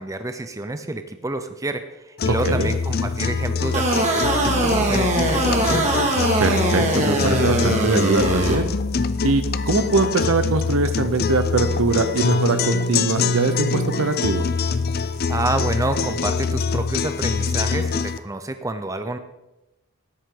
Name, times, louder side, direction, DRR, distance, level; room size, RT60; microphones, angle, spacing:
voice 1, 0.0-5.9 15.3-19.2, right 2 dB, 15° right, 8 dB, 0.6 m, -28 dB
sound 1, 2.2-18.2, left 4 dB, 45° left, 0.5 m, -24 dB
sound 2, 3.7-8.6, right 1 dB, 30° right, 1.9 m, -21 dB
voice 2, 6.4-8.7 9.2-14.4, right 3 dB, 65° right, 9 dB, 0.8 m, -22 dB
13.0 x 10.5 x 3.8 m, 0.97 s
head